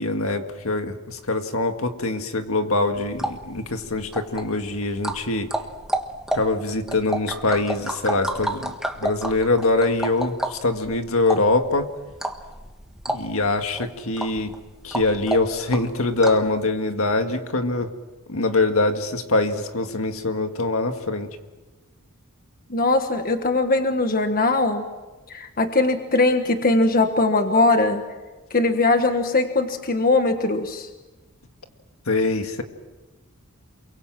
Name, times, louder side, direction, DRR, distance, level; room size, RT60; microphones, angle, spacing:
voice 1, 0.0-5.5 6.3-11.9 13.1-14.5 14.8-17.9 18.3-21.3 32.1-32.6, left 2 dB, 70° left, 6 dB, 2.0 m, -23 dB
sound 1, 2.9-16.5, right 1 dB, 5° right, 1.5 m, -31 dB
voice 2, 22.7-24.8 25.3-28.0 28.5-30.9, left 2 dB, 40° left, 6 dB, 1.5 m, -20 dB
28.5 x 23.5 x 7.6 m, 1.2 s
head